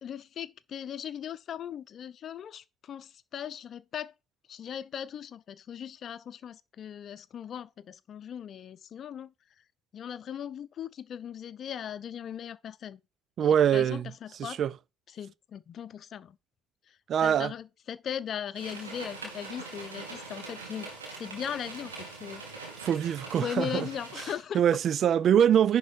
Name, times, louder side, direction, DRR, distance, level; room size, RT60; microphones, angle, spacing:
voice 1, 0.0-4.1 4.5-9.3 9.9-13.0 13.4-14.6 15.1-16.4 17.2-20.9 21.2-22.4 23.4-24.6, left 9 dB, 50° left, 0.8 m, -38 dB
voice 2, 13.4-14.1 14.4-14.7 17.1-17.5 22.8-23.9 24.5-25.8, right 9 dB, 50° right, 0.5 m, -23 dB
sound 1, 18.5-24.3, right 3 dB, 90° right, 2.5 m, -43 dB
10.5 x 4.7 x 4.6 m
hypercardioid pair, 55°, 0 cm